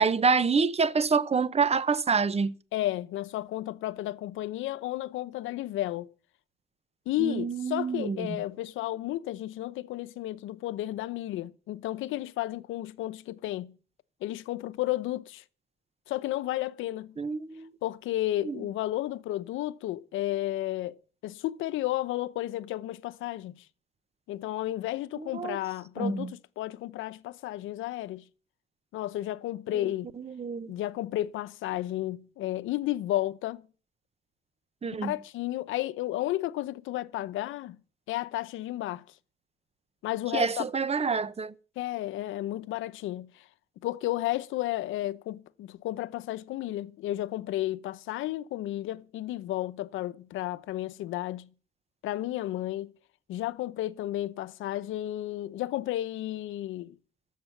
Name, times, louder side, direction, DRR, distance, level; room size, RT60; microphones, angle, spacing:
voice 1, 0.0-2.5 7.2-8.4 17.2-17.7 18.4-18.6 25.2-25.6 26.0-26.3 29.8-29.9 30.2-30.7 34.8-35.1 40.3-41.5, right 5 dB, 30° right, 1.0 m, -27 dB
voice 2, 2.7-6.1 7.1-13.8 14.2-15.4 16.1-17.2 17.8-21.0 21.2-23.6 24.3-28.2 28.9-30.1 30.7-33.7 35.0-37.8 38.1-39.0 40.0-40.6 41.8-43.4 43.8-51.5 52.0-52.9 53.3-56.9, left 15 dB, 90° left, 0.7 m, -32 dB
13.0 x 7.5 x 9.3 m
cardioid pair, 90°, 20 cm